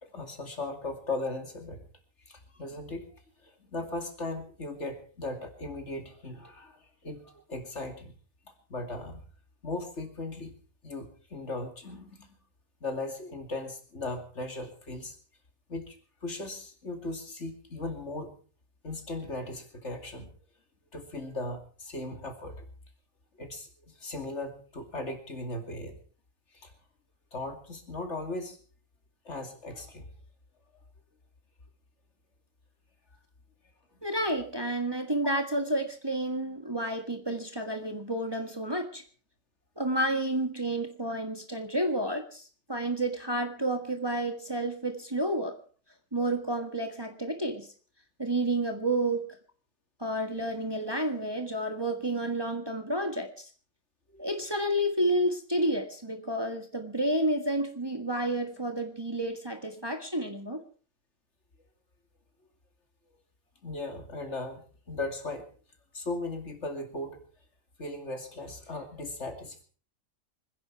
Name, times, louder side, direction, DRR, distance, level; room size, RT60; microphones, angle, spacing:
voice 1, 0.0-1.9 2.3-8.2 8.7-9.2 9.6-10.5 10.8-12.3 12.8-15.2 15.7-18.4 18.8-20.3 20.9-22.7 23.4-26.0 26.5-26.7 27.3-28.6 29.2-30.1 54.1-54.3 63.6-65.5 65.9-67.2 67.8-69.6, left 2 dB, 55° left, 5 dB, 2.9 m, -38 dB
voice 2, 34.0-39.0 39.8-45.6 46.1-47.7 48.2-49.4 50.0-53.5 54.2-60.6, right 1 dB, 20° right, 5 dB, 1.6 m, -30 dB
25.5 x 10.5 x 4.6 m, 0.41 s
omnidirectional pair, 1.4 m